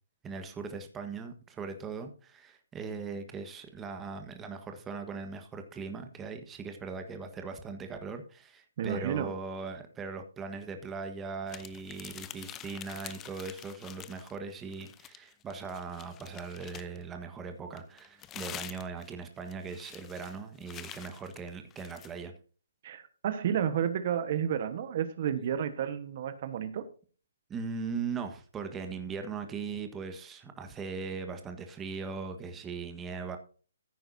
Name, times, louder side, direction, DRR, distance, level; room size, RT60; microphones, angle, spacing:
voice 1, 0.2-22.3 27.5-33.4, right 5 dB, 15° right, 6 dB, 1.4 m, -39 dB
voice 2, 8.8-9.3 22.8-26.9, right 9 dB, 45° right, 11 dB, 1.3 m, -31 dB
sound 1, 11.5-14.4 14.7-17.0 17.8-22.1, left 11 dB, 20° left, 0.7 m, -47 dB
15.0 x 9.3 x 2.7 m, 0.38 s
hypercardioid pair, 145°, 0 cm